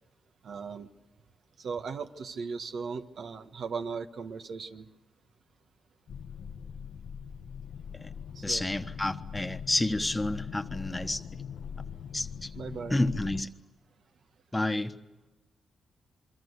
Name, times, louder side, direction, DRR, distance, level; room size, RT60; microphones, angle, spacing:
voice 1, 0.4-0.9 1.6-4.9 8.3-8.7 12.5-13.0, right 5 dB, 70° right, 8 dB, 1.4 m, -37 dB
sound 1, 6.1-13.4, left 7 dB, 75° left, 0.9 m, -41 dB
voice 2, 8.4-11.2 12.1-12.5 12.9-13.5 14.5-14.9, left 1 dB, 15° left, 8 dB, 1.2 m, -30 dB
27.0 x 23.5 x 8.1 m, 1.1 s
cardioid pair, 75°, 0 cm